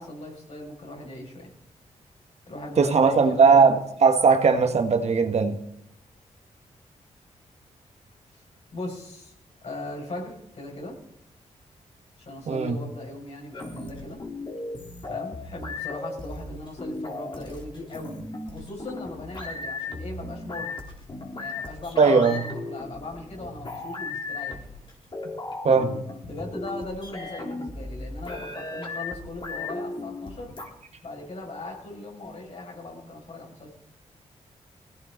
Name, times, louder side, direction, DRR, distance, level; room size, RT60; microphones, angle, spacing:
voice 1, 0.0-1.5 2.5-3.6 8.3-8.4 8.7-9.3 9.6-10.9 12.2-14.2 15.0-18.2 18.4-20.8 21.4-24.7 26.2-30.5 31.0-33.7, left 2 dB, 55° left, -1 dB, 6.7 m, -39 dB
voice 2, 2.8-5.6 12.5-12.8 22.0-22.4 25.6-25.9, right 5 dB, 60° right, 7 dB, 1.6 m, -19 dB
sound 1, 13.5-30.7, left 3 dB, 40° left, 4.0 m, -36 dB
21.0 x 17.0 x 4.1 m, 0.76 s
cardioid pair, 90°, 13 cm